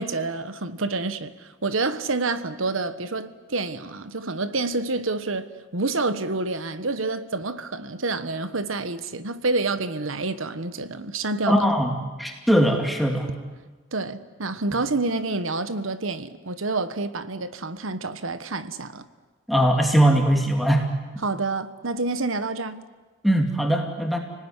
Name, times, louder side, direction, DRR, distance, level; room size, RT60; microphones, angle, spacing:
voice 1, 0.0-11.7 13.9-19.0 21.2-22.8, right 3 dB, 80° right, 1.3 m, -28 dB
voice 2, 11.5-13.3 19.5-20.8 23.2-24.2, equal, ahead, 2.6 m, -20 dB
30.0 x 19.5 x 9.9 m
head